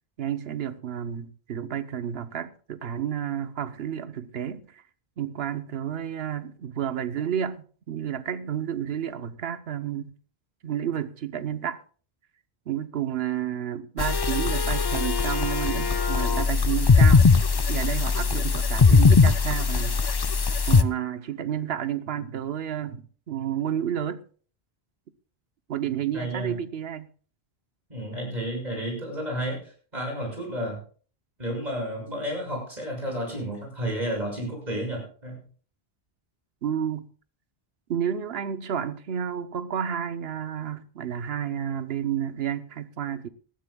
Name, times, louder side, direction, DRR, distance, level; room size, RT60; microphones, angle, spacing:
voice 1, 0.2-4.8 5.2-10.1 10.6-11.8 12.7-17.3 17.7-20.0 20.7-24.2 25.7-27.1 36.6-37.1 37.9-43.3, right 9 dB, 75° right, 1.0 m, -31 dB
sound 1, 14.0-20.8, left 4 dB, 35° left, 0.4 m, -20 dB
voice 2, 26.1-26.5 27.9-30.8 31.4-35.4, right 1 dB, 45° right, 6.6 m, -31 dB
20.0 x 13.5 x 2.3 m
omnidirectional pair, 1.0 m